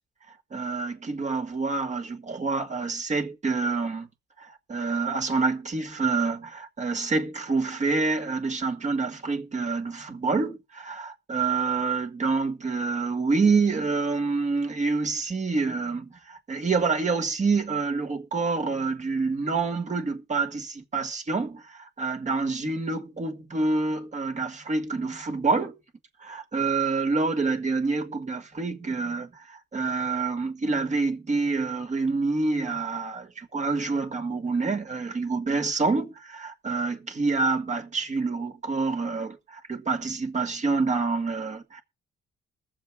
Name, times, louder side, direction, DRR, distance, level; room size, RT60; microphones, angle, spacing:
voice 1, 0.5-4.1 4.4-25.8 26.2-41.8, right 4 dB, 35° right, 1.9 m, -27 dB
21.5 x 7.3 x 3.6 m
cardioid pair, 90°, 20 cm